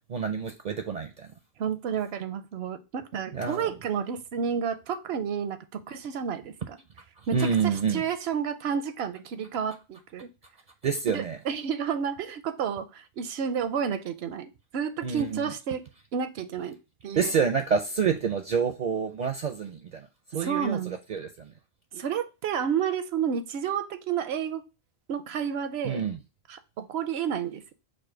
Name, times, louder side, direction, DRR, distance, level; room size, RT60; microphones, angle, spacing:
voice 1, 0.1-1.3 3.3-3.7 7.3-8.0 10.8-11.4 15.0-15.5 17.1-20.1 20.3-21.5 25.8-26.2, right 6 dB, 55° right, 6 dB, 0.5 m, -28 dB
voice 2, 1.6-6.8 7.3-7.4 7.6-10.3 11.1-15.8 16.1-16.8 17.0-17.3 20.3-21.0 21.9-24.6 25.1-26.0 26.5-27.7, right 7 dB, 80° right, 11 dB, 0.8 m, -31 dB
5.1 x 2.1 x 4.9 m, 0.29 s
omnidirectional pair, 1.1 m